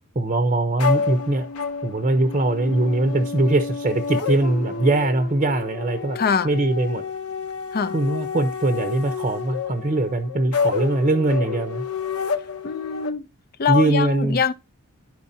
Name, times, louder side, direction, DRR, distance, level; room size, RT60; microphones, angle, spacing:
voice 1, 0.2-1.5 1.8-7.0 7.9-11.8 13.7-14.4, right 2 dB, 35° right, 0.7 m, -21 dB
sound 1, 0.8-13.1, left 5 dB, 75° left, 0.8 m, -29 dB
voice 2, 6.2-6.5 7.7-7.9 12.6-13.2 13.6-14.5, left 6 dB, 45° left, 0.5 m, -23 dB
12.0 x 4.6 x 2.7 m
head